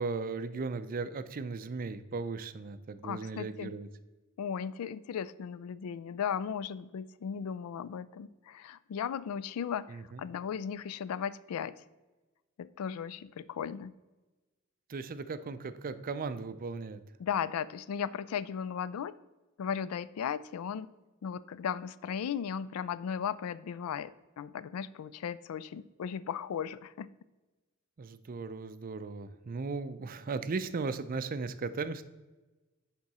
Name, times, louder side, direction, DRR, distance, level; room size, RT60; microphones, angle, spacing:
voice 1, 0.0-3.9 9.9-10.2 14.9-17.0 28.0-32.0, right 4 dB, 40° right, 12 dB, 0.4 m, -37 dB
voice 2, 3.0-3.7 4.4-11.7 12.6-13.9 17.2-19.2 19.6-20.9 21.2-27.1, left 7 dB, 85° left, 17 dB, 0.3 m, -36 dB
10.5 x 3.8 x 4.1 m, 1.2 s
head